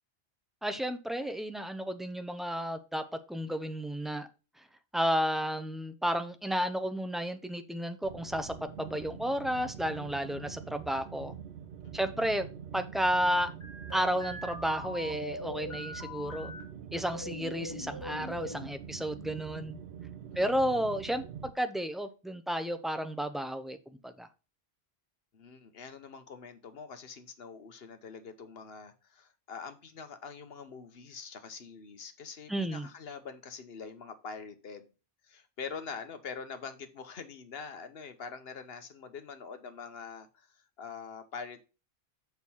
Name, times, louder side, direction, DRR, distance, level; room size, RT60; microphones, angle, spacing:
voice 1, 0.6-4.3 4.9-11.3 11.9-12.5 12.7-13.5 13.9-16.5 16.9-19.8 20.4-23.8 24.0-24.3 32.5-32.9, equal, ahead, 0.5 m, -32 dB
sound 1, 8.0-21.5, right 8 dB, 80° right, 0.9 m, -45 dB
sound 2, 13.6-16.6 17.1-18.7, left 1 dB, 25° left, 2.7 m, -42 dB
voice 2, 25.3-34.9 35.2-41.6, left 5 dB, 70° left, 1.2 m, -44 dB
6.6 x 4.7 x 5.5 m
omnidirectional pair, 1.1 m